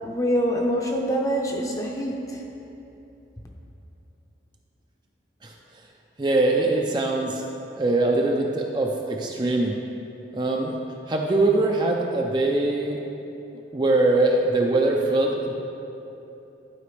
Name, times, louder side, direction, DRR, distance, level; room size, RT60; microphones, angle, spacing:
voice 1, 0.0-2.4, equal, 20° left, 0 dB, 0.6 m, -25 dB
voice 2, 6.2-7.4 7.8-9.8 10.3-10.8 11.1-13.0 13.7-15.5, right 2 dB, 25° right, 1 dB, 0.4 m, -22 dB
11.5 x 5.0 x 3.2 m, 3.0 s
head